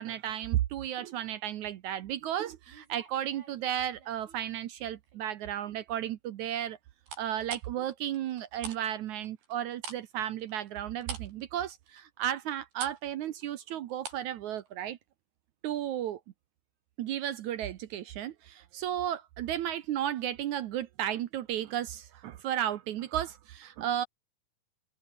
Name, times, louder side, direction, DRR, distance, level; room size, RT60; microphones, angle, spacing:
voice 1, 0.0-6.8 7.2-15.0 15.6-16.2 17.0-24.1, right 11 dB, 70° right, 1.9 m, -34 dB
sound 1, 2.7-4.4 4.8-5.3 7.1-8.8 9.1-14.3 14.6-14.7, right 6 dB, 90° right, 6.9 m, -45 dB
omnidirectional pair, 4.3 m